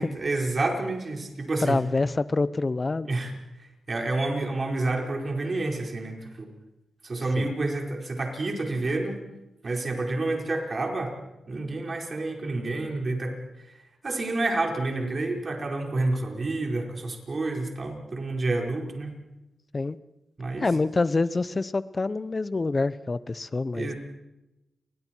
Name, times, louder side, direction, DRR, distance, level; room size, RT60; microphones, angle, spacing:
voice 1, 0.0-1.8 3.0-3.3 3.6-6.5 7.0-9.2 9.6-11.1 11.5-13.4 14.0-19.1 20.4-20.7 23.7-23.9, right 2 dB, 45° right, 1 dB, 4.9 m, -29 dB
voice 2, 1.6-3.1 7.4-7.5 19.7-20.0 20.6-23.9, left 3 dB, 35° left, 16 dB, 0.9 m, -26 dB
29.0 x 22.0 x 4.6 m, 0.96 s
cardioid pair, 75°, 0 cm